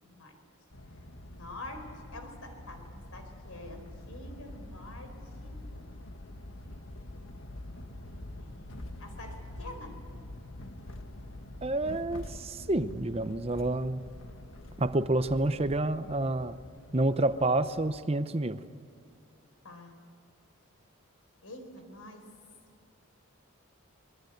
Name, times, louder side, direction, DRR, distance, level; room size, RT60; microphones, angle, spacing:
voice 1, 0.0-0.4 1.3-5.1 5.4-5.6 8.4-10.0 19.6-19.9 21.4-22.2, left 1 dB, 90° left, 6 dB, 4.4 m, -46 dB
sound 1, 0.7-18.0, left 1 dB, 65° left, 1.7 m, -46 dB
voice 2, 11.6-14.0 14.8-16.6 16.9-18.6, right 2 dB, 25° right, 12 dB, 0.7 m, -28 dB
25.5 x 21.0 x 8.0 m, 2.4 s
head